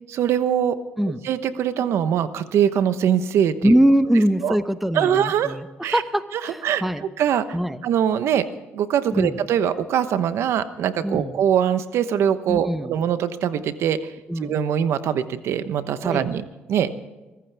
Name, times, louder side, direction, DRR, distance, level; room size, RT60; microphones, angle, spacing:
voice 1, 0.1-0.8 1.2-3.8 4.4-4.5 4.9-5.6 5.8-6.0 6.4-6.8 7.2-7.5 7.8-8.5 8.7-16.9, right 9 dB, 75° right, 12 dB, 1.0 m, -22 dB
voice 2, 3.6-7.0 7.5-7.8 9.1-9.4 11.0-11.3 12.5-12.9 14.3-14.6 16.0-16.3, equal, 5° right, 11 dB, 0.9 m, -22 dB
23.5 x 14.5 x 3.5 m, 1.1 s
cardioid pair, 105°, 5 cm